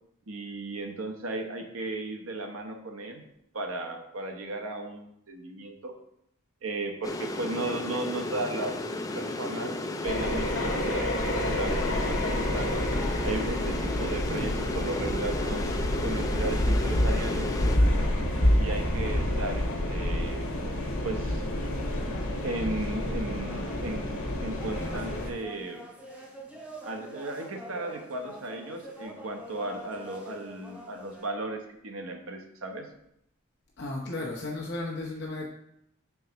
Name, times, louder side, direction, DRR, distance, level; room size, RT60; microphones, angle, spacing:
voice 1, 0.3-3.2 3.5-5.9 6.6-8.7 9.2-9.7 10.0-12.8 13.2-15.7 16.0-17.5 18.5-20.5 21.0-21.5 22.4-25.8 26.8-32.9, right 2 dB, 70° right, 4 dB, 0.9 m, -35 dB
sound 1, 7.0-17.8, left 2 dB, 15° left, 0.4 m, -34 dB
sound 2, 10.0-25.3, left 1 dB, 75° left, 1.0 m, -28 dB
sound 3, 23.0-31.3, equal, 5° right, 0.7 m, -45 dB
voice 2, 33.8-35.5, left 2 dB, 50° left, -3 dB, 0.9 m, -34 dB
4.6 x 4.1 x 5.7 m, 0.77 s
head